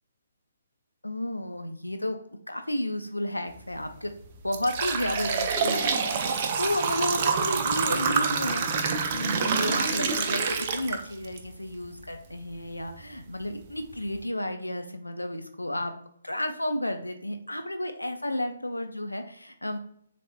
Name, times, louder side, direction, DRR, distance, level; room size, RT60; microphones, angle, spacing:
voice 1, 1.0-2.2 2.5-4.1 4.4-15.9 16.2-19.8, left 1 dB, 80° left, 7 dB, 0.4 m, -32 dB
sound 1, 3.6-3.8 4.2-11.4 11.8-11.9 12.8-12.9 13.4-13.5 13.9-14.2, right 5 dB, 35° right, 0.4 m, -27 dB
3.8 x 3.3 x 2.4 m, 0.65 s
figure-of-eight pair, 135°, 0 cm